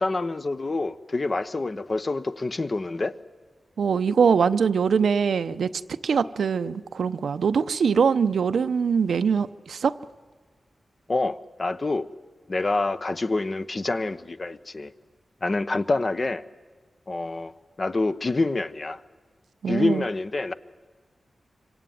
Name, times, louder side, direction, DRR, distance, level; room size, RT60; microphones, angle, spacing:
voice 1, 0.0-3.1 11.1-12.1 12.5-14.9 15.4-16.4 17.1-17.5 17.8-19.0 19.7-20.5, left 2 dB, 40° left, 1.0 m, -27 dB
voice 2, 3.8-5.7 6.0-9.9 19.6-20.0, right 6 dB, 85° right, 0.8 m, -22 dB
26.0 x 24.5 x 9.3 m
wide cardioid pair, 95°, 0 cm